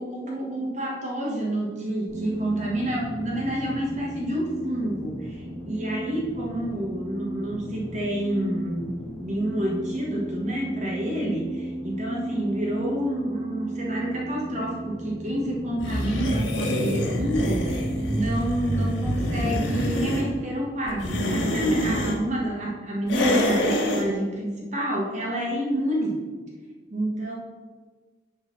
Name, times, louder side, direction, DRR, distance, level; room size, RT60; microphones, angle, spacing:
voice 1, 0.0-17.8 18.1-26.2 26.9-27.3, right 1 dB, 40° right, -3 dB, 1.4 m, -28 dB
sound 1, 2.1-18.2, right 1 dB, 10° left, 2.3 m, -35 dB
sound 2, 15.8-20.3 20.9-22.2 23.1-24.1, equal, 85° left, 1.2 m, -26 dB
7.0 x 4.1 x 6.0 m, 1.4 s
head